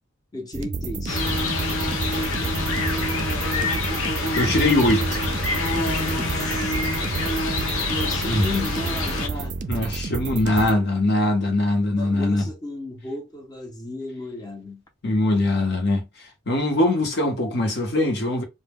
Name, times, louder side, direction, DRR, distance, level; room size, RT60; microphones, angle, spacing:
voice 1, 0.3-1.2 6.2-6.8 7.9-9.6 12.0-14.8, left 2 dB, 20° left, 0.6 m, -33 dB
sound 1, 0.5-10.7, right 4 dB, 40° right, 0.3 m, -30 dB
sound 2, 1.1-9.3, left 2 dB, 90° left, 0.6 m, -26 dB
voice 2, 3.9-5.3 8.3-8.5 9.7-12.5 15.0-16.0 16.5-18.4, left 1 dB, 55° left, 0.8 m, -22 dB
2.1 x 2.1 x 3.4 m
head